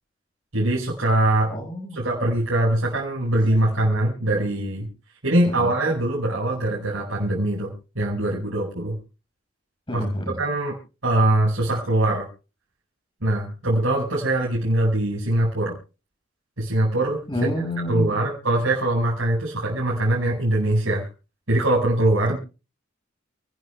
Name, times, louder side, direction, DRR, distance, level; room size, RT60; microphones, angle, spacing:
voice 1, 0.5-1.5 1.9-4.9 5.2-8.9 9.9-10.0 10.4-10.7 11.0-12.3 13.2-15.7 16.6-17.5 17.9-21.1 21.5-22.4, right 1 dB, 80° right, -4 dB, 5.0 m, -22 dB
voice 2, 1.5-2.0 5.6-5.7 9.9-10.3 17.3-18.3, left 1 dB, 25° left, 3 dB, 5.4 m, -29 dB
29.5 x 12.0 x 2.2 m, 0.31 s
head